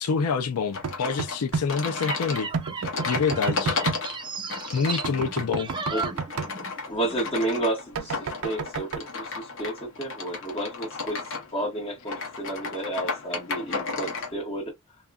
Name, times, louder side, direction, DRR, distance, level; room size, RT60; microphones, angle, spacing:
voice 1, 0.0-2.5 2.8-3.8 4.7-5.7, left 5 dB, 90° left, 0.5 m, -27 dB
sound 1, 0.7-14.3, left 4 dB, 60° left, 0.9 m, -34 dB
sound 2, 0.8-1.7 2.5-4.0 5.0-6.5 8.0-9.0, right 5 dB, 75° right, 0.5 m, -30 dB
sound 3, 1.8-6.8 7.0-7.3, right 4 dB, 20° right, 0.5 m, -35 dB
voice 2, 6.9-11.3 11.5-14.7, right 1 dB, 25° left, 1.5 m, -31 dB
2.8 x 2.4 x 2.3 m
head